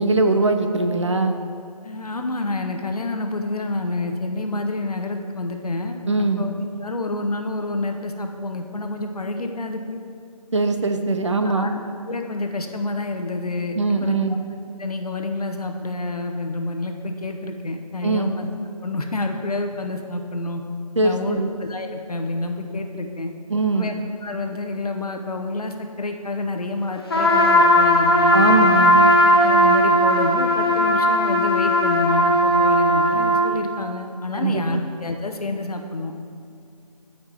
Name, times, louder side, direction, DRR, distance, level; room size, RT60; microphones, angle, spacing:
voice 1, 0.0-1.4 6.0-6.4 10.5-11.7 13.7-14.4 18.0-18.3 21.0-21.5 23.5-23.9 28.3-29.0 34.3-34.6, right 3 dB, 50° right, 6 dB, 0.6 m, -21 dB
voice 2, 1.8-6.5 6.8-10.0 11.4-11.7 12.1-14.2 14.8-18.5 18.8-20.6 21.0-23.3 23.7-23.9 24.2-28.4 29.4-36.1, left 2 dB, 70° left, 5 dB, 1.0 m, -28 dB
Trumpet, 27.1-33.5, equal, 40° left, 0.9 m, -17 dB
15.0 x 5.3 x 3.5 m, 2.4 s
figure-of-eight pair, 170°, 20 cm